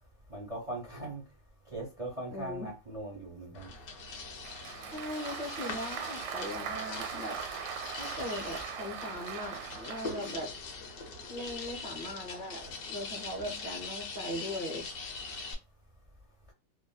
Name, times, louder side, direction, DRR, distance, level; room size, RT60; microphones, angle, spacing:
voice 1, 0.3-1.2 1.7-3.7, right 1 dB, 60° right, -1 dB, 0.3 m, -40 dB
voice 2, 2.3-2.7 4.9-7.4 8.0-10.5 11.3-14.8, left 1 dB, 45° left, -4 dB, 0.6 m, -39 dB
sound 1, 3.5-15.5, left 4 dB, 65° left, 1.1 m, -42 dB
Applause, 4.4-10.5, right 8 dB, 85° right, 1.3 m, -40 dB
3.1 x 2.1 x 2.3 m, 0.30 s
omnidirectional pair, 2.0 m